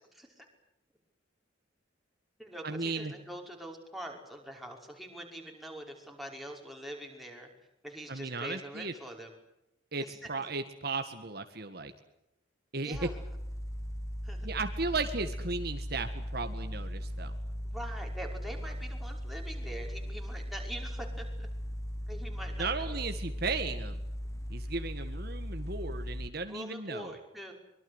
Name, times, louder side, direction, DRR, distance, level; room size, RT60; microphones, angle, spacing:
voice 1, 0.1-0.5 2.4-7.5 7.8-9.3 10.0-10.5 12.8-13.2 14.2-14.5 17.6-21.5 22.1-23.0 26.3-27.5, right 1 dB, ahead, 0 dB, 5.5 m, -44 dB
voice 2, 2.6-3.1 8.1-8.9 9.9-11.9 12.7-13.1 14.4-17.4 22.6-24.0 24.5-27.1, right 3 dB, 50° right, 7 dB, 1.9 m, -35 dB
sound 1, 12.9-26.3, equal, 15° left, 1.1 m, -38 dB
25.0 x 23.5 x 8.1 m, 0.88 s
head